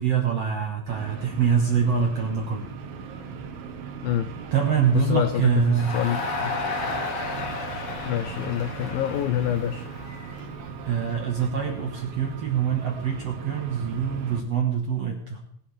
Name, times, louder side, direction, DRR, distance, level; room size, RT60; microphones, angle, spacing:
voice 1, 0.0-2.7 4.5-6.2 10.8-15.4, right 7 dB, 60° right, 1 dB, 1.7 m, -25 dB
sound 1, 0.9-14.4, right 6 dB, 80° right, 3.5 m, -38 dB
voice 2, 4.9-6.7 8.0-9.9, left 11 dB, 85° left, 10 dB, 2.0 m, -27 dB
Crowd, 5.8-11.0, left 3 dB, 50° left, 3.2 m, -33 dB
21.0 x 11.0 x 3.4 m, 0.68 s
omnidirectional pair, 4.8 m